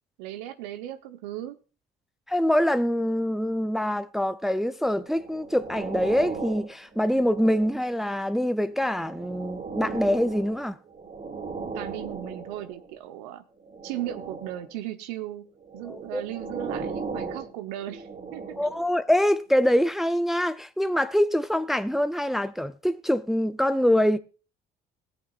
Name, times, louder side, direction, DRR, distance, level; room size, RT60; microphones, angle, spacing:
voice 1, 0.2-1.6 11.7-13.4 13.8-15.5 15.7-18.4, right 12 dB, 80° right, 1.0 m, -36 dB
voice 2, 2.3-10.8 15.9-16.2 18.6-24.2, equal, ahead, 0.7 m, -24 dB
sound 1, 4.9-8.0 8.7-12.9 13.6-14.8 15.6-18.9 19.6-19.8, right 4 dB, 40° right, 3.4 m, -37 dB
17.0 x 8.6 x 2.5 m
hypercardioid pair, 60°, 21 cm